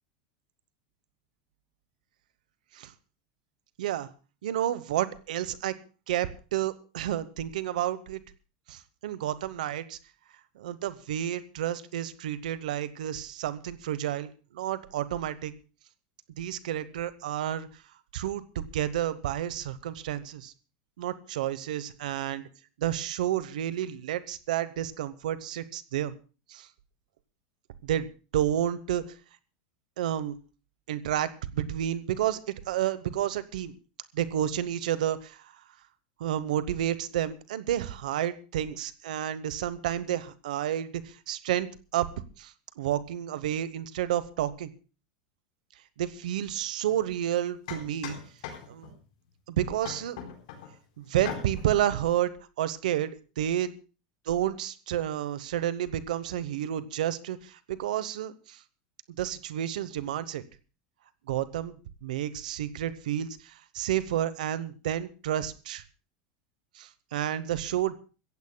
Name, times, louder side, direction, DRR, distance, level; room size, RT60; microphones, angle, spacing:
voice 1, 3.8-4.1 4.4-5.7 6.1-8.2 8.7-10.0 10.6-15.5 16.4-17.8 18.1-20.5 21.0-22.5 22.8-26.1 26.5-26.7 27.8-28.1 28.3-29.0 30.0-30.3 30.9-33.7 34.1-35.6 36.2-42.1 42.4-44.7 46.0-48.2 48.7-48.9 49.5-50.2 51.0-53.7 54.3-58.6 59.2-60.4 61.3-61.8 62.0-65.8 66.7-68.0, right 11 dB, 90° right, 14 dB, 0.9 m, -30 dB
sound 1, 46.9-47.0 47.7-49.0 49.8-50.7 51.2-51.8, left 8 dB, 75° left, 4.2 m, -40 dB
24.5 x 15.5 x 2.2 m, 0.34 s
supercardioid pair, 140°, 4 cm